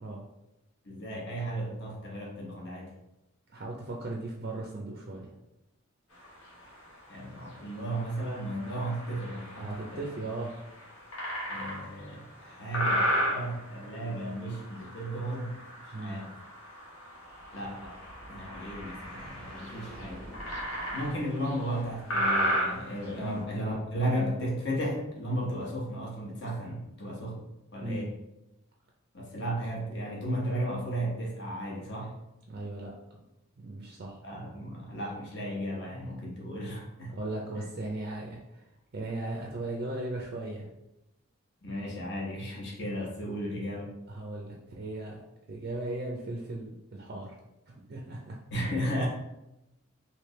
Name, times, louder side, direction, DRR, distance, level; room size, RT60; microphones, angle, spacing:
voice 1, 0.8-2.9 7.1-10.1 11.5-15.6 15.8-16.3 17.5-17.9 18.3-20.3 20.9-27.4 27.7-28.1 29.1-32.2 34.2-37.1 41.6-43.9 48.5-49.1, right 1 dB, 50° left, -3 dB, 1.0 m, -34 dB
voice 2, 3.5-5.3 9.6-10.6 15.9-16.2 23.2-23.4 27.8-28.1 32.5-32.9 33.6-34.2 37.1-38.6 38.9-40.7 44.1-45.2 45.5-47.3 47.7-48.4, right 2 dB, 45° right, -2 dB, 0.4 m, -37 dB
sound 1, 6.1-23.4, equal, 80° left, 1.3 m, -35 dB
sound 2, 17.2-23.8, equal, 5° left, 0.7 m, -50 dB
3.2 x 2.8 x 3.1 m, 0.92 s
head